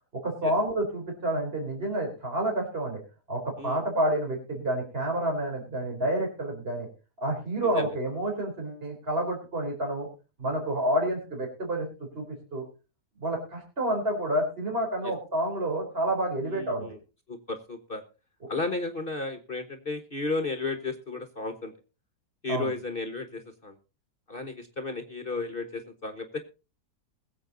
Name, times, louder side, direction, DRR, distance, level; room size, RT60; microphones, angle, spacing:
voice 1, 0.1-3.0 3.3-6.9 7.2-10.1 10.4-11.9 12.1-12.6 13.2-16.9 22.5-22.7, right 1 dB, 35° right, 1 dB, 4.3 m, -29 dB
voice 2, 16.5-17.0 17.3-18.0 18.5-21.7 22.4-23.8 24.3-26.4, left 3 dB, 35° left, 7 dB, 1.4 m, -33 dB
21.0 x 7.8 x 4.0 m, 0.33 s
omnidirectional pair, 1.7 m